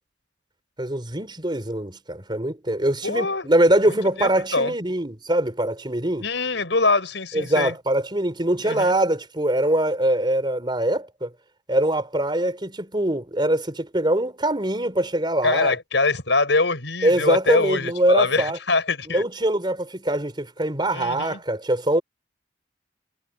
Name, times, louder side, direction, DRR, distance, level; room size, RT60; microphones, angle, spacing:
voice 1, 0.8-6.3 7.3-11.3 11.7-15.7 17.0-18.6 19.1-22.0, right 1 dB, 25° right, 4.3 m, -23 dB
voice 2, 3.0-3.5 3.9-4.7 6.2-7.7 8.6-8.9 15.4-19.2 20.9-21.4, left 3 dB, 90° left, 5.2 m, -23 dB
head